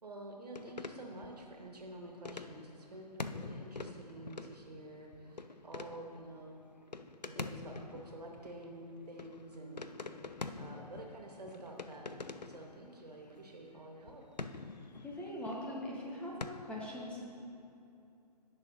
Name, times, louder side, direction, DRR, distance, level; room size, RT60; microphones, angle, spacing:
voice 1, 0.0-6.6 7.4-9.9 10.6-14.2, right 1 dB, 70° right, 1 dB, 1.7 m, -49 dB
sound 1, 0.5-16.5, left 3 dB, 85° left, 0.5 m, -46 dB
voice 2, 15.0-17.3, left 1 dB, 5° left, -4 dB, 0.9 m, -41 dB
18.0 x 6.4 x 2.9 m, 2.7 s
figure-of-eight pair, 130°, 21 cm